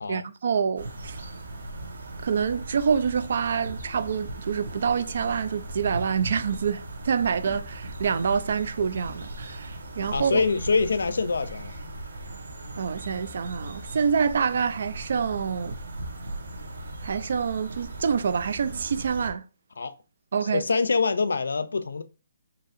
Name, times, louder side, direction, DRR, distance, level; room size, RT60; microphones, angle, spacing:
voice 1, 0.1-1.2 2.2-10.4 12.8-15.8 17.0-19.4 20.3-20.6, right 6 dB, 60° right, 0.4 m, -26 dB
sound 1, 0.8-19.3, right 2 dB, 80° right, 1.1 m, -38 dB
voice 2, 10.1-11.7 19.8-20.0 20.5-22.0, left 4 dB, 85° left, 0.4 m, -25 dB
4.1 x 2.8 x 2.5 m
hypercardioid pair, 160°, 0 cm